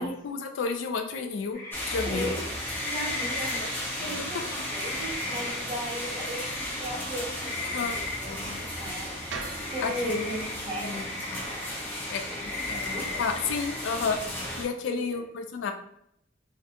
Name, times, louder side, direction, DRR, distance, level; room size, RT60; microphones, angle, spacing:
voice 1, 0.0-1.6 1.9-2.4 4.2-4.3 7.6-8.0 9.8-11.0 12.1-12.2 12.7-12.9 13.2-14.2 14.6-15.7, left 5 dB, 80° left, 6 dB, 0.3 m, -31 dB
sound 1, 1.5-14.2, left 2 dB, 55° left, 1.0 m, -38 dB
sound 2, 1.7-14.6, left 1 dB, 10° left, 0.5 m, -35 dB
voice 2, 2.0-2.5 2.8-9.2 9.7-11.0 12.2-13.3 14.8-15.2, right 1 dB, 25° right, -4 dB, 0.8 m, -37 dB
sound 3, 9.3-13.5, right 4 dB, 80° right, 0.4 m, -44 dB
2.4 x 2.1 x 2.8 m, 0.73 s
head